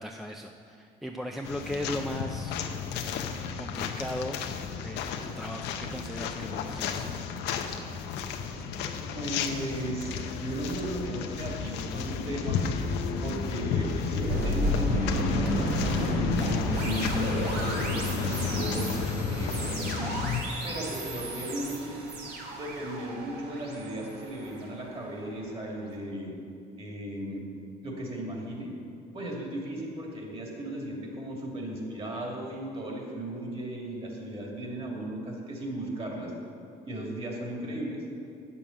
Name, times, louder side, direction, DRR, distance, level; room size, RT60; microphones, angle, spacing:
voice 1, 0.0-2.6 3.6-4.4 4.7-7.1, left 1 dB, ahead, 2 dB, 0.5 m, -37 dB
sound 1, 1.4-20.4, left 6 dB, 90° left, 0.8 m, -32 dB
voice 2, 9.1-12.6 13.2-18.9 19.3-20.2 20.6-22.0 22.5-26.3 26.8-27.4 27.8-28.7 29.1-36.3 36.8-38.0, right 1 dB, 35° right, -1 dB, 2.5 m, -36 dB
sound 2, 14.3-25.3, right 1 dB, 70° right, 2.3 m, -33 dB
9.0 x 6.9 x 7.2 m, 2.5 s
cardioid pair, 110°, 17 cm